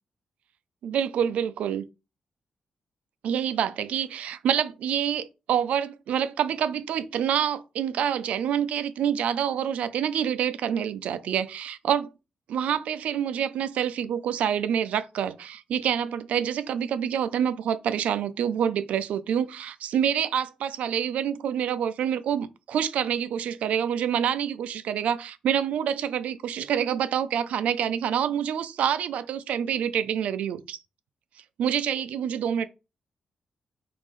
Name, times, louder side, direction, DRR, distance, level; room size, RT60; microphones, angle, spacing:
voice 1, 0.8-1.8 3.2-12.1 12.5-30.8 31.6-32.7, right 9 dB, 85° right, 0.3 m, -27 dB
3.1 x 2.5 x 3.5 m
wide cardioid pair, 145°, 2 cm